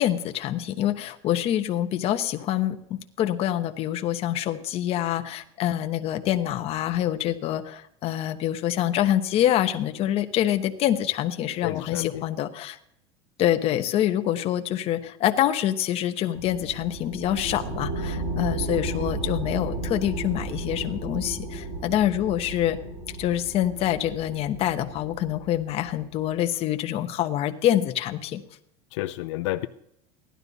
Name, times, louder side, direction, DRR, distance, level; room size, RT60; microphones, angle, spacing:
voice 1, 0.0-12.8 13.4-22.8 23.2-28.4, left 12 dB, 40° left, 7 dB, 1.1 m, -26 dB
voice 2, 11.6-12.3 28.9-29.7, left 17 dB, 85° left, 8 dB, 0.6 m, -30 dB
sound 1, 16.3-26.4, right 2 dB, 30° right, 2.7 m, -34 dB
16.0 x 11.5 x 4.1 m, 0.75 s
supercardioid pair, 145°, 15 cm